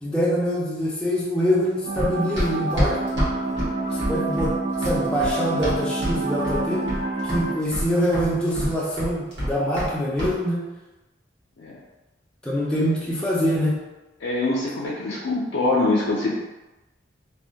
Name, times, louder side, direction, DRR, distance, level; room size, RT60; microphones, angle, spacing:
voice 1, 0.0-3.0 3.9-6.8 7.2-10.6 12.4-13.8, equal, 5° left, -7 dB, 0.4 m, -24 dB
sound 1, 1.8-7.5, right 2 dB, 85° right, 0.5 m, -28 dB
Run, 2.0-6.2 6.4-7.0 7.3-9.9 10.2-10.4, equal, 70° right, 1.0 m, -27 dB
voice 2, 6.6-7.0 11.6-11.8 14.2-16.3, left 2 dB, 80° left, -5 dB, 0.4 m, -24 dB
2.1 x 2.1 x 2.7 m, 1.1 s
head